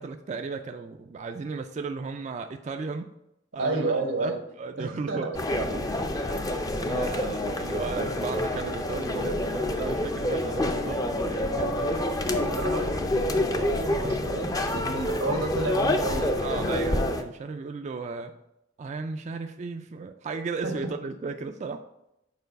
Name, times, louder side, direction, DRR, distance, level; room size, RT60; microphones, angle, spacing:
voice 1, 0.0-3.1 3.5-5.5 5.7-5.8 6.2-6.5 6.8-12.1 15.1-15.2 16.4-18.3 18.8-21.8, right 4 dB, 35° right, 6 dB, 0.3 m, -35 dB
voice 2, 3.6-4.4 4.8-5.7 12.5-16.4 20.6-20.7, right 2 dB, 90° right, 4 dB, 1.3 m, -31 dB
sound 1, 5.3-17.2, left 1 dB, 20° left, 0.5 m, -27 dB
6.7 x 4.6 x 5.2 m, 0.85 s
head